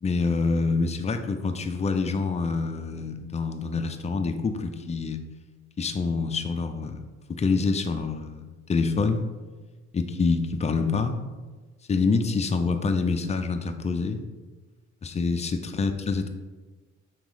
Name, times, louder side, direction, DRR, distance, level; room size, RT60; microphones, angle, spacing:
voice 1, 0.0-5.2 5.8-9.2 9.9-11.2 11.9-14.2 15.0-16.3, left 4 dB, 20° left, 6 dB, 0.4 m, -26 dB
4.1 x 3.0 x 3.8 m, 1.3 s
cardioid pair, 90°, 30 cm